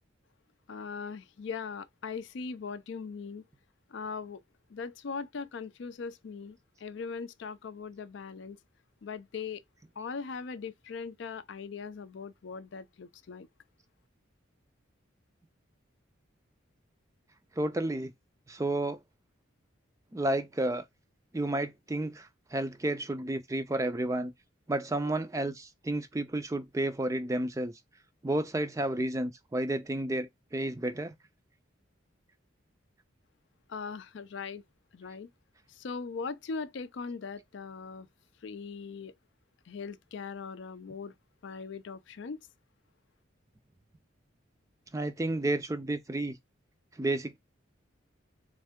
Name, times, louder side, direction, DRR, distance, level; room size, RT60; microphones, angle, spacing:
voice 1, 0.7-3.4 3.9-4.4 4.7-8.6 9.0-9.6 10.0-13.5 33.7-34.6 34.9-35.3 35.7-38.1 38.4-39.1 39.7-41.1 41.4-42.4, left 5 dB, 70° left, 0.4 m, -40 dB
voice 2, 17.6-18.1 18.5-19.0 20.1-20.8 21.3-24.3 24.7-27.7 28.2-31.1 44.9-46.4 47.0-47.4, right 1 dB, 15° right, 0.4 m, -31 dB
3.6 x 3.2 x 3.5 m
head